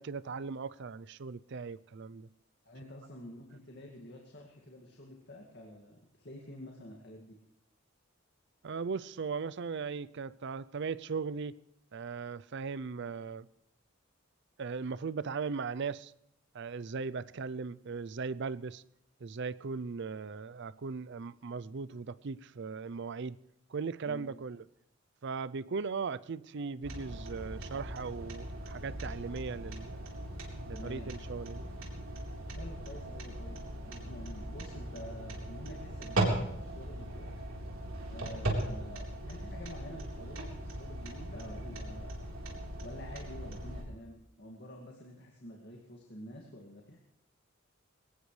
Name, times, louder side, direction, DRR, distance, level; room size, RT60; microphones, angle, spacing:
voice 1, 0.0-2.3 8.6-11.5 11.9-13.5 14.6-16.1 16.5-18.8 19.2-23.4 23.7-24.6 25.2-30.0 30.7-31.7, right 5 dB, 60° right, 0.5 m, -38 dB
voice 2, 2.7-7.4 13.0-13.1 24.0-24.3 30.7-31.1 32.5-37.3 38.1-42.2 42.8-47.0, left 1 dB, 55° left, 2.2 m, -48 dB
sound 1, 26.8-43.8, right 1 dB, 90° right, 3.9 m, -38 dB
22.0 x 18.5 x 3.3 m
head